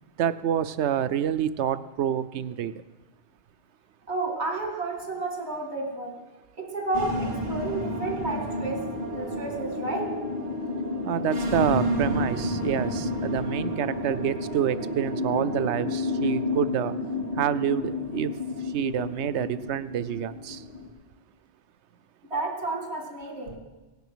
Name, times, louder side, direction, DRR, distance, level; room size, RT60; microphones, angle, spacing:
voice 1, 0.2-2.8 11.0-16.9 17.4-18.3 18.7-20.6, right 9 dB, 90° right, 14 dB, 0.9 m, -27 dB
voice 2, 4.1-6.2 6.6-8.8 9.1-10.1 22.3-23.6, right 2 dB, 75° right, 0 dB, 2.5 m, -31 dB
sound 1, 6.9-20.9, left 1 dB, 35° right, 2.5 m, -30 dB
17.0 x 10.5 x 6.2 m, 1.2 s
omnidirectional pair, 1.1 m